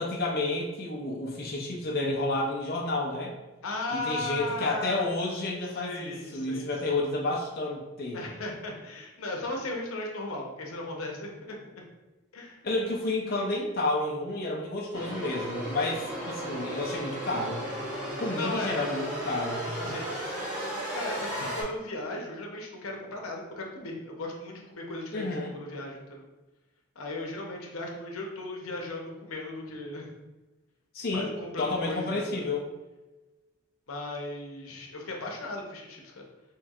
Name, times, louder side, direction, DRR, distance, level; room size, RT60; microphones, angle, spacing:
voice 1, 0.0-3.3 3.9-8.3 12.6-17.6 18.2-19.7 25.1-25.5 30.9-31.3 31.6-32.7, left 2 dB, 45° left, -2 dB, 0.5 m, -30 dB
voice 2, 3.6-5.1 5.8-7.0 8.1-11.8 12.3-12.6 18.4-18.8 19.8-20.1 20.9-26.2 27.0-30.1 31.1-32.5 33.9-36.3, left 2 dB, 90° left, 0 dB, 0.8 m, -36 dB
sound 1, 14.9-21.6, right 1 dB, 20° right, 1.3 m, -35 dB
4.4 x 3.3 x 2.4 m, 1.1 s
head